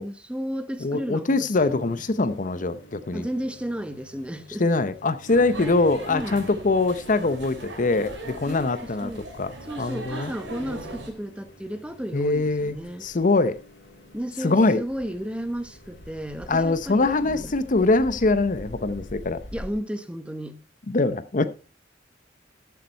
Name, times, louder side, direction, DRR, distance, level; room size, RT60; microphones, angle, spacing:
voice 1, 0.0-2.0 3.1-4.6 6.1-6.4 8.5-9.2 9.7-13.1 14.1-17.5 19.5-20.6 21.4-21.5, equal, 5° right, 0.8 m, -33 dB
voice 2, 0.8-3.3 4.6-10.3 12.1-13.6 14.4-14.8 16.5-19.4 20.9-21.4, left 3 dB, 45° left, 0.7 m, -23 dB
sound 1, 1.5-19.7, equal, 70° left, 2.9 m, -47 dB
sound 2, 5.3-11.1, right 1 dB, 85° right, 3.3 m, -39 dB
14.0 x 7.0 x 4.4 m
head